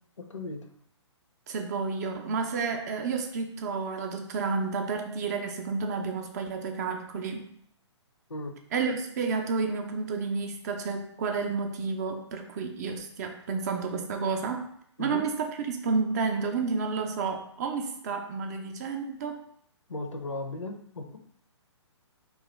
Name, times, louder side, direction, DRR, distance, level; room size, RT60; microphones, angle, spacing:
voice 1, 0.2-0.6 8.3-8.5 15.0-15.3 19.9-21.2, left 2 dB, 90° left, 5 dB, 0.5 m, -36 dB
voice 2, 1.5-7.5 8.7-14.7 15.0-19.4, right 4 dB, 35° right, 5 dB, 0.4 m, -31 dB
2.8 x 2.3 x 3.1 m, 0.67 s
figure-of-eight pair, 130°, 15 cm